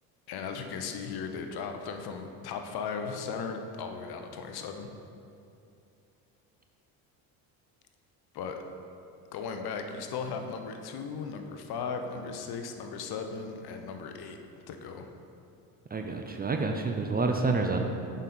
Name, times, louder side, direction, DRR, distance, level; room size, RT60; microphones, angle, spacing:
voice 1, 0.3-4.9 8.3-8.6 9.3-14.4 14.7-15.1, left 5 dB, 60° left, 6 dB, 0.8 m, -37 dB
voice 2, 15.9-17.8, right 3 dB, 20° right, 4 dB, 0.5 m, -28 dB
7.2 x 5.3 x 4.1 m, 2.6 s
supercardioid pair, 75°, 44 cm